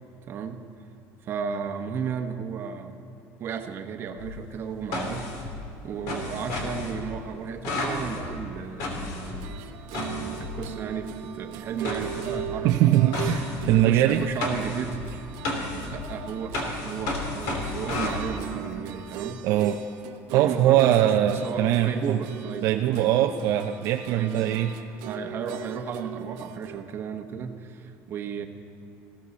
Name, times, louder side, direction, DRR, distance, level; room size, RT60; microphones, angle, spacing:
voice 1, 0.3-0.6 1.2-3.0 3.4-5.5 5.8-9.6 10.2-13.3 13.7-15.3 15.8-19.4 20.3-23.3 24.1-24.6 25.1-28.5, right 6 dB, 40° right, 6 dB, 1.1 m, -34 dB
sound 1, 4.2-11.0 11.8-18.2, left 2 dB, 75° left, 3.1 m, -33 dB
sound 2, 9.2-26.8, right 9 dB, 80° right, 1.0 m, -39 dB
voice 2, 12.6-14.2 19.4-19.8 20.3-22.2 22.6-24.7, right 12 dB, 60° right, 5 dB, 0.5 m, -22 dB
19.0 x 16.0 x 4.2 m, 2.9 s
cardioid pair, 150°, 6 cm